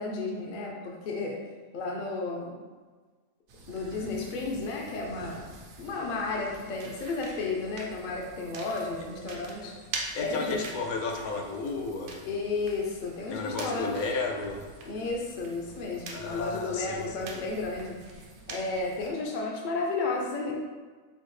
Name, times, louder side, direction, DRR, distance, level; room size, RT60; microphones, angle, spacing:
voice 1, 0.0-1.4 1.7-2.6 3.7-5.5 5.8-9.7 10.2-10.6 12.2-13.9 14.9-18.0 18.5-20.5, left 3 dB, 55° left, -1 dB, 0.5 m, -32 dB
sound 1, 3.5-19.1, right 3 dB, 65° right, 0.8 m, -45 dB
voice 2, 10.1-12.3 13.3-14.7 16.1-17.3 18.2-18.3, left 3 dB, 85° left, 2 dB, 1.0 m, -33 dB
5.4 x 2.1 x 3.1 m, 1.4 s
omnidirectional pair, 1.5 m